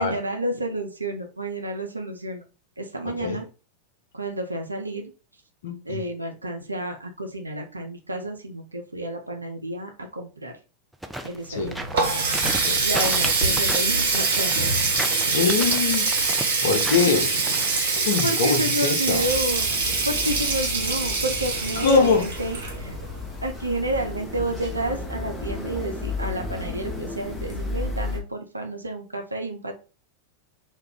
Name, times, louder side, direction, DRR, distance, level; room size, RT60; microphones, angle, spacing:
voice 1, 0.0-2.5 2.8-3.5 4.1-5.1 5.8-10.6 11.2-11.9 12.8-14.5 17.9-23.0 23.4-29.7, right 1 dB, 80° right, 0.4 m, -30 dB
voice 2, 3.1-3.4 5.6-6.0 11.5-11.7 12.6-12.8 15.3-16.1 16.6-17.4 18.0-19.2 21.8-22.3, left 5 dB, 55° left, 0.6 m, -23 dB
sound 1, 10.9-18.2, right 1 dB, 5° right, 0.3 m, -34 dB
Water tap faucet, 11.5-23.2, right 4 dB, 60° right, 0.9 m, -24 dB
sound 2, 19.1-28.2, left 3 dB, 15° left, 0.7 m, -34 dB
2.3 x 2.2 x 3.5 m
figure-of-eight pair, 90°, 0 cm